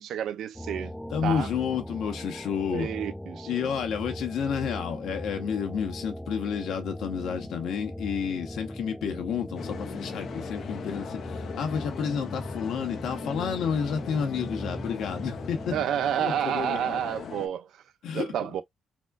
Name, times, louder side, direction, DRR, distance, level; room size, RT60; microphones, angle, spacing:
voice 1, 0.0-0.9 1.2-1.5 2.7-3.7 15.7-17.8 18.1-18.6, right 10 dB, 75° right, 0.5 m, -30 dB
sound 1, 0.5-15.9, equal, ahead, 0.4 m, -39 dB
voice 2, 1.1-2.9 3.5-15.7 16.2-17.0 18.0-18.2, left 7 dB, 80° left, 1.2 m, -30 dB
sound 2, 9.6-17.5, left 7 dB, 65° left, 0.6 m, -40 dB
4.2 x 2.4 x 2.3 m
cardioid pair, 90°, 0 cm